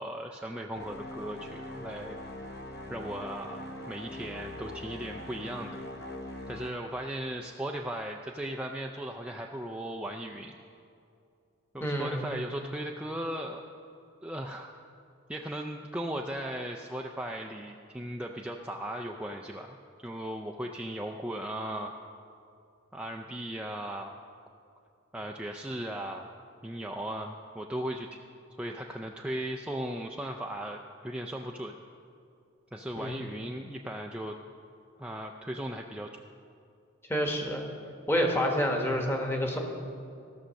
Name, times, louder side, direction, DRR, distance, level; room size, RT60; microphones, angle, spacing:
voice 1, 0.0-2.2 2.9-5.8 6.5-10.5 11.7-13.6 14.2-14.7 15.3-19.8 20.0-21.9 22.9-24.1 25.1-26.3 26.6-28.2 28.6-31.8 32.7-34.4 35.0-36.2, right 1 dB, 5° right, 1 dB, 0.3 m, -37 dB
sound 1, 0.7-6.7, left 1 dB, 50° left, 1.0 m, -42 dB
voice 2, 11.8-12.2 33.0-33.1 37.1-37.7 38.1-39.6, equal, 10° left, 1 dB, 1.1 m, -28 dB
14.0 x 6.4 x 6.3 m, 2.5 s
head